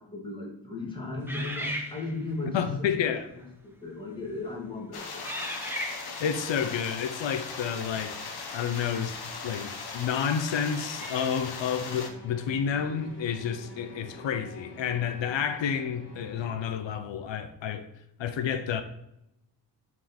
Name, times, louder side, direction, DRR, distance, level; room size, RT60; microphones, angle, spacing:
voice 1, 0.0-2.9 3.4-5.3, left 2 dB, 10° left, 2.0 m, -36 dB
sound 1, 1.3-2.4 3.2-3.5 4.1-4.5 5.2-6.4 9.1-9.2 10.7-11.5, equal, 5° right, 1.1 m, -37 dB
voice 2, 2.5-3.3 6.2-9.2 9.4-17.9 18.2-18.8, left 7 dB, 90° left, 0.8 m, -30 dB
sound 2, 4.9-12.1, left 4 dB, 60° left, 1.2 m, -39 dB
sound 3, 11.3-16.5, left 1 dB, 25° left, 2.5 m, -48 dB
9.2 x 4.7 x 4.3 m
wide cardioid pair, 155°, 44 cm